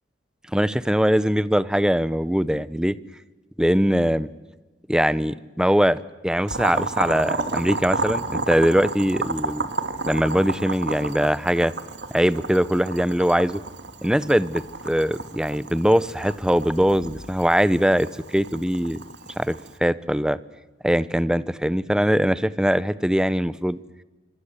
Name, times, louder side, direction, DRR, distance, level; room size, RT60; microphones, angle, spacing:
voice 1, 0.5-3.0 3.6-4.3 4.9-9.7 10.0-11.7 12.1-13.6 14.0-19.0 19.4-20.4 20.8-23.8, equal, 5° right, 17 dB, 0.8 m, -21 dB
Boiling, 6.5-19.7, right 3 dB, 80° right, 2.5 m, -32 dB
27.5 x 25.0 x 8.3 m, 1.1 s
head